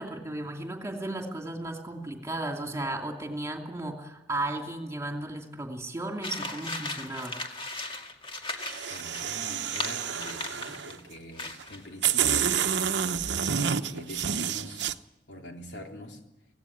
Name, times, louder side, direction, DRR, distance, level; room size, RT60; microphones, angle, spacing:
voice 1, 0.0-7.3, right 2 dB, 15° right, 2 dB, 2.7 m, -35 dB
sound 1, 6.2-11.0 11.3-11.8, left 2 dB, 30° left, 2.1 m, -37 dB
sound 2, 8.6-10.9 11.6-11.7 12.0-14.9, right 8 dB, 75° right, 0.8 m, -29 dB
voice 2, 8.9-12.8 13.8-14.8 15.3-16.2, left 1 dB, 70° left, 2 dB, 3.3 m, -44 dB
17.0 x 16.5 x 10.0 m, 0.97 s
head